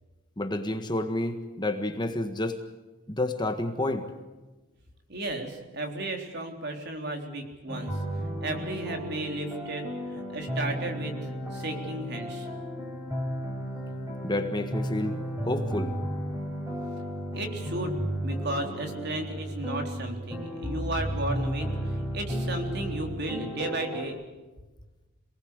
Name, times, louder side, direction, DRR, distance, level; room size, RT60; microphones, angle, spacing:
voice 1, 0.4-2.6 3.1-4.1 14.2-15.2 15.4-15.9, left 1 dB, 20° left, 7 dB, 1.6 m, -29 dB
voice 2, 5.1-8.0 8.4-12.5 17.3-24.2, right 1 dB, 55° right, 4 dB, 3.7 m, -34 dB
sound 1, 7.7-24.0, equal, 15° right, 5.1 m, -33 dB
27.0 x 19.5 x 8.2 m, 1.2 s
head